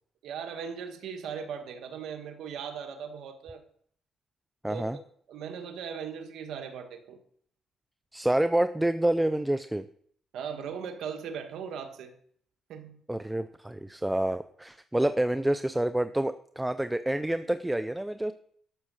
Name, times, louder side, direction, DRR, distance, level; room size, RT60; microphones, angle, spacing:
voice 1, 0.2-3.6 4.7-4.8 5.3-7.2 10.3-12.1 12.7-13.0, right 7 dB, 80° right, 5 dB, 1.5 m, -38 dB
voice 2, 4.6-5.0 8.1-9.8 13.1-18.3, right 1 dB, 10° right, 12 dB, 0.5 m, -28 dB
12.0 x 6.5 x 6.3 m, 0.62 s
cardioid pair, 90°, 0 cm